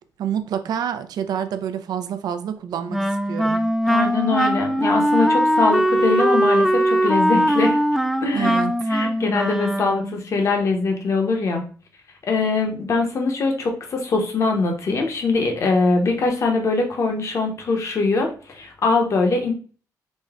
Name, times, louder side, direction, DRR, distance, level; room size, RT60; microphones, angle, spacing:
voice 1, 0.2-3.0 3.3-3.6 8.3-8.7, right 8 dB, 75° right, 9 dB, 0.5 m, -27 dB
Wind instrument woodwind instrument, 2.9-10.2, equal, ahead, 0.4 m, -20 dB
voice 2, 3.9-7.8 8.2-8.6 8.9-11.6 12.3-19.5, left 3 dB, 45° left, 2 dB, 0.9 m, -22 dB
5.2 x 2.2 x 3.5 m, 0.40 s
cardioid pair, 135°, 7 cm